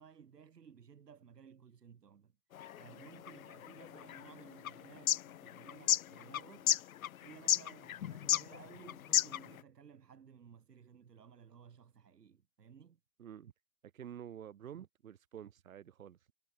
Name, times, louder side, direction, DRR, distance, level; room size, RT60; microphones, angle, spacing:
voice 1, 0.0-2.4 2.8-6.7 7.2-13.0, right 7 dB, 75° right, 7.9 m, -57 dB
sound 1, 2.5-9.6, left 11 dB, 60° left, 0.6 m, -33 dB
voice 2, 13.2-13.5 13.8-16.3, right 9 dB, 55° right, 2.0 m, -49 dB
hypercardioid pair, 170°, 48 cm